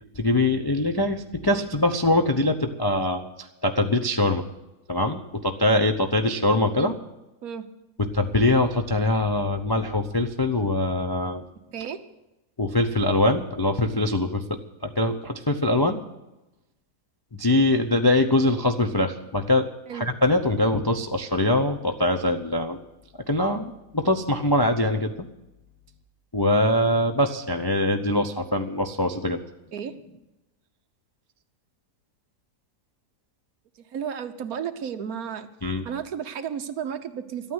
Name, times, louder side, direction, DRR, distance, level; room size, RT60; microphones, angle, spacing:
voice 1, 0.2-4.4 4.9-6.9 8.0-11.4 12.6-14.4 14.8-16.0 17.4-19.7 19.9-22.8 23.3-25.3 26.3-29.4 35.6-35.8, left 1 dB, 35° left, 5 dB, 0.3 m, -23 dB
voice 2, 33.8-35.5 35.8-37.5, right 8 dB, 65° right, 9 dB, 1.4 m, -33 dB
13.0 x 9.1 x 9.4 m, 0.98 s
omnidirectional pair, 1.7 m